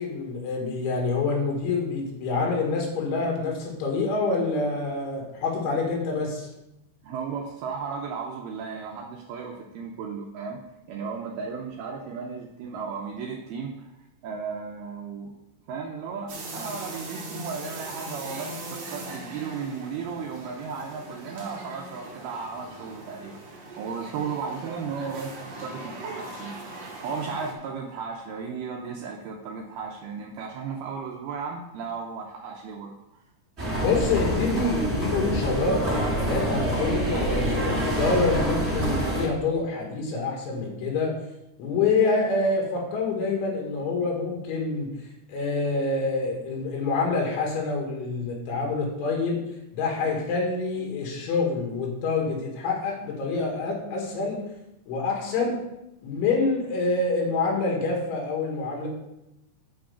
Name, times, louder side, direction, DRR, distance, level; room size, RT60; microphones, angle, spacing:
voice 1, 0.0-6.5 33.8-41.1 41.6-44.9 45.3-49.4 49.7-54.4 54.9-55.6 56.0-58.9, left 3 dB, 90° left, 0 dB, 4.4 m, -26 dB
voice 2, 7.0-10.6 10.9-13.9 14.2-15.4 15.7-33.2, right 5 dB, 80° right, -1 dB, 2.3 m, -35 dB
sound 1, 16.3-27.5, right 2 dB, 55° right, 1.9 m, -40 dB
sound 2, 33.6-39.3, right 1 dB, 20° right, 1.8 m, -26 dB
8.7 x 5.2 x 6.9 m, 0.89 s
omnidirectional pair, 5.3 m